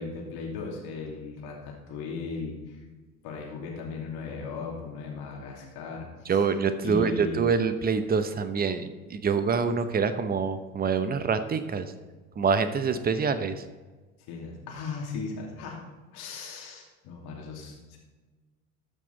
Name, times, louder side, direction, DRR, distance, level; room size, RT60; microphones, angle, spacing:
voice 1, 0.0-2.8 3.2-6.5 6.8-7.4 14.2-15.8 16.1-18.0, left 4 dB, 55° left, -1 dB, 2.7 m, -37 dB
voice 2, 6.3-11.9 12.4-13.6, right 5 dB, 20° right, 10 dB, 0.9 m, -26 dB
13.5 x 5.9 x 4.0 m, 1.3 s
hypercardioid pair, 80°, 45 cm